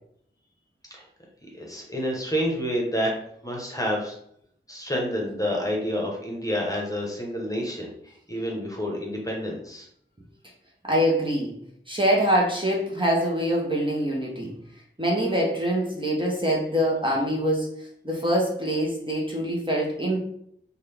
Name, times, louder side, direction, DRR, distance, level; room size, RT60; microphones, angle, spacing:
voice 1, 1.5-3.1 3.4-4.2 4.7-9.9, equal, 15° left, -2 dB, 1.0 m, -29 dB
voice 2, 10.8-11.5 11.9-14.5 15.0-20.2, equal, 25° right, -3 dB, 0.8 m, -24 dB
3.8 x 2.3 x 3.3 m, 0.69 s
wide cardioid pair, 40°, 21 cm